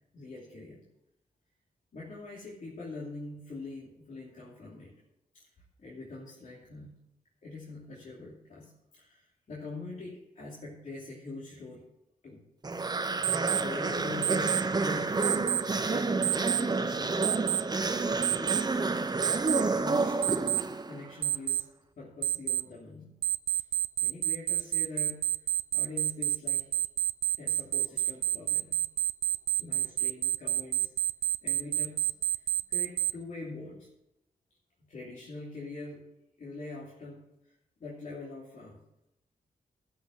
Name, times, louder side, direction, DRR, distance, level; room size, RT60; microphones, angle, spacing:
voice 1, 0.1-0.8 1.9-4.9 5.3-5.5 5.8-7.0 7.4-11.8 12.2-12.4 13.0-15.5 15.8-17.7 18.3-18.8 19.5-21.7 22.0-23.1 23.5-23.6 24.0-25.3 25.7-26.7 27.4-28.8 29.6-30.9 31.4-33.9 34.9-36.0 36.4-37.5 37.8-38.8, left 3 dB, 60° left, -6 dB, 2.8 m, -44 dB
sound 1, 12.6-21.1, right 3 dB, 30° right, 0.7 m, -29 dB
Alarm, 13.2-13.6 14.2-14.6 15.2-15.6 16.2-16.6 17.2-17.6 18.2-18.6 19.2-19.6 20.2-20.6 21.2-21.6 22.2-22.6 23.2-33.1, right 13 dB, 85° right, 0.4 m, -28 dB
12.0 x 5.6 x 6.2 m, 0.86 s
cardioid pair, 65°, 15 cm